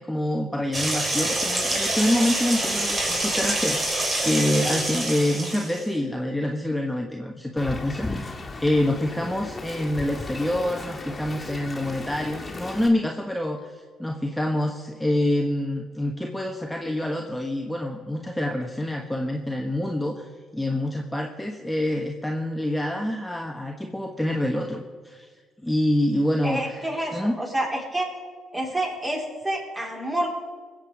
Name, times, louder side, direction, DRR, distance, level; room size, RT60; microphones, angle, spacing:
voice 1, 0.0-25.3 25.6-27.3, left 1 dB, 5° left, 1 dB, 1.3 m, -26 dB
sound 1, 0.7-5.8, right 1 dB, 35° right, 3.8 m, -26 dB
Wind, 7.6-12.9, left 3 dB, 25° left, 2.1 m, -36 dB
voice 2, 26.4-28.1 28.5-30.4, right 1 dB, 20° right, -1 dB, 4.8 m, -28 dB
22.0 x 7.8 x 5.2 m, 1.5 s
hypercardioid pair, 55°, 0 cm